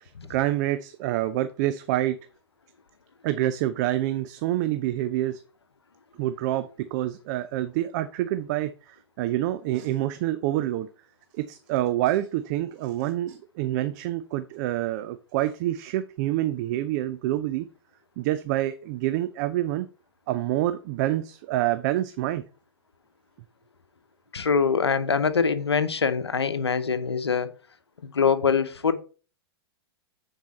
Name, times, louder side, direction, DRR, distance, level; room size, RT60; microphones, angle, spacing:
voice 1, 0.0-2.2 3.2-5.4 6.2-10.9 11.4-17.7 18.2-19.9 20.3-22.4, right 14 dB, 45° right, 0.6 m, -27 dB
voice 2, 24.3-27.5 28.0-29.0, left 6 dB, 90° left, 0.8 m, -24 dB
9.3 x 4.5 x 4.2 m
hypercardioid pair, 110°, 13 cm